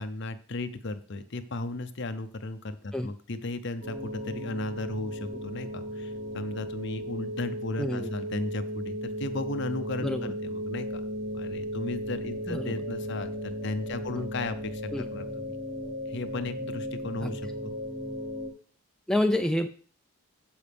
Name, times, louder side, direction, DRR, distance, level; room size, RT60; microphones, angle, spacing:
voice 1, 0.0-11.0 11.3-14.8 15.1-15.5 16.1-17.7, left 2 dB, 50° left, 10 dB, 0.7 m, -35 dB
sound 1, 3.8-18.5, equal, 80° right, 3.3 m, -36 dB
voice 2, 7.8-8.1 10.0-10.3 12.5-12.8 14.1-14.3 14.9-15.1 17.2-17.4 19.1-19.7, left 1 dB, 5° left, 5 dB, 0.3 m, -28 dB
13.5 x 5.0 x 3.5 m, 0.43 s
head